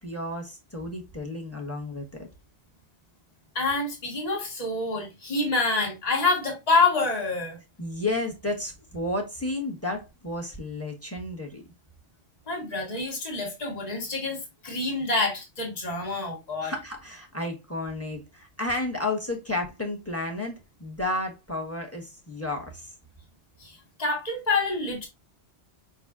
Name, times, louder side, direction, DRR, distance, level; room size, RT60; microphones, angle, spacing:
voice 1, 0.0-2.0 7.8-11.6 16.6-22.9, left 2 dB, 15° left, 1.1 m, -32 dB
voice 2, 3.5-7.6 12.5-16.7 23.6-25.1, left 3 dB, 35° left, 1.5 m, -27 dB
5.2 x 3.9 x 2.4 m
omnidirectional pair, 1.1 m